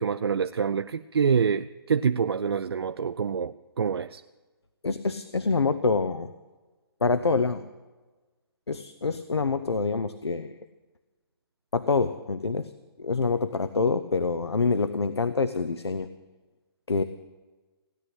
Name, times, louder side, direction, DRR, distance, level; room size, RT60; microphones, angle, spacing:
voice 1, 0.0-4.2, right 6 dB, 70° right, 10 dB, 0.5 m, -26 dB
voice 2, 4.8-6.3 7.0-7.6 8.7-10.6 11.7-12.7 13.0-16.1 16.9-17.0, left 4 dB, 85° left, 12 dB, 0.7 m, -26 dB
17.0 x 10.0 x 7.8 m, 1.3 s
figure-of-eight pair, 140°, 13 cm